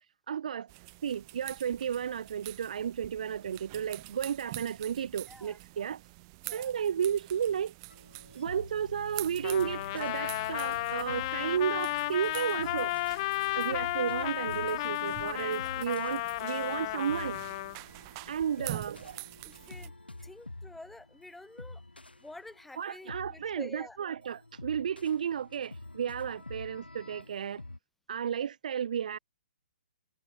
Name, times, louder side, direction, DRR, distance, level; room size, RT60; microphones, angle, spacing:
voice 1, 0.3-0.7 1.0-6.0 6.5-7.7 8.3-12.9 13.6-17.4 18.3-19.2 22.8-27.6 28.1-29.2, right 8 dB, 50° right, 0.5 m, -33 dB
sound 1, 0.7-19.9, right 28 dB, 30° right, 5.5 m, -47 dB
voice 2, 5.3-5.6 6.4-6.7 9.8-10.8 11.1-11.3 11.9-12.5 15.6-15.7 18.6-18.8 19.4-19.9 20.2-21.8 22.2-24.0, left 2 dB, 5° left, 7.1 m, -49 dB
sound 2, 7.9-27.8, left 2 dB, 80° left, 2.4 m, -48 dB
Trumpet, 9.4-17.8, left 20 dB, 30° left, 0.6 m, -33 dB
figure-of-eight pair, 125°, 5 cm